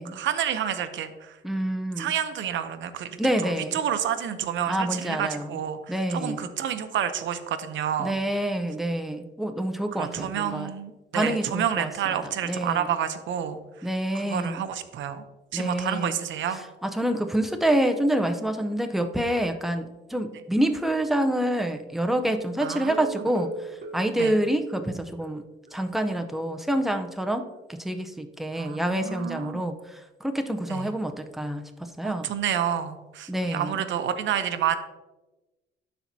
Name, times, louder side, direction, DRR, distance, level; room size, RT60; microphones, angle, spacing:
voice 1, 0.1-1.4 2.0-8.2 9.9-13.9 14.1-15.2 15.5-16.6 22.6-23.3 24.2-24.3 28.5-29.6 30.7-30.9 32.0-34.8, right 9 dB, 70° right, 9 dB, 0.7 m, -29 dB
voice 2, 1.4-2.1 3.2-3.8 4.7-5.5 5.9-6.5 8.0-10.7 11.1-11.9 12.4-12.9 13.8-14.6 15.5-16.1 16.8-25.4 25.7-31.6 32.0-32.3 33.3-33.7, right 1 dB, ahead, 5 dB, 0.7 m, -27 dB
sound 1, 22.9-25.4 25.7-25.8 26.1-26.2 26.6-26.7, right 3 dB, 50° right, 1.4 m, -39 dB
12.0 x 4.3 x 2.8 m, 1.1 s
cardioid pair, 90°, 20 cm